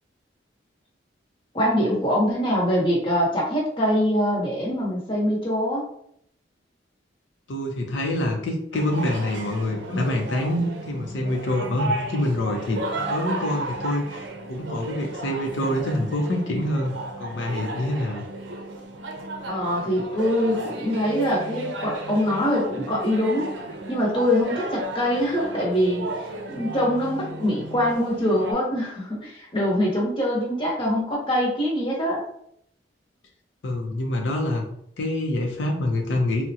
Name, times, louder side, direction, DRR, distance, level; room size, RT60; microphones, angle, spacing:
voice 1, 1.5-5.9 19.5-23.5 23.9-26.1 26.5-32.2, equal, 30° left, -3 dB, 0.9 m, -23 dB
voice 2, 7.5-18.2 33.6-34.7 35.0-36.5, left 1 dB, 90° left, 1 dB, 0.5 m, -26 dB
sound 1, 8.7-28.5, right 2 dB, 75° right, 0.5 m, -34 dB
3.6 x 2.1 x 2.7 m, 0.69 s
head